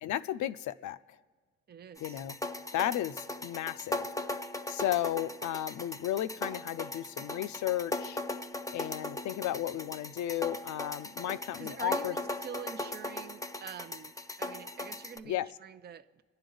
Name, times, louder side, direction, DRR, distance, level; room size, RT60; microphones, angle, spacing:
voice 1, 0.0-1.0 2.0-2.4 2.7-4.1 4.7-8.2 8.7-12.1 15.3-15.5, left 12 dB, 70° left, 0.6 m, -34 dB
voice 2, 1.7-2.2 11.6-16.2, right 7 dB, 35° right, 0.6 m, -46 dB
sound 1, 2.0-15.2, left 2 dB, 10° left, 0.7 m, -38 dB
29.0 x 10.0 x 3.9 m
cardioid pair, 90°, 30 cm